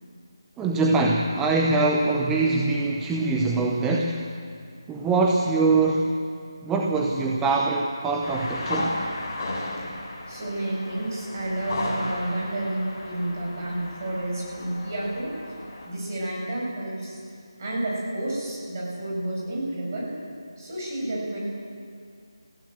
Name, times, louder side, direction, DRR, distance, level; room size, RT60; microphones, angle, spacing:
voice 1, 0.6-4.3 4.9-6.2 6.6-9.0, right 3 dB, 10° right, 0 dB, 0.7 m, -23 dB
sound 1, 8.2-15.9, left 1 dB, 25° left, 4.1 m, -34 dB
voice 2, 10.3-15.3 15.8-17.2 17.6-20.1 20.6-21.4, right 1 dB, 35° right, -3 dB, 6.9 m, -30 dB
21.5 x 16.0 x 7.9 m, 2.3 s
figure-of-eight pair, 160°, 3 cm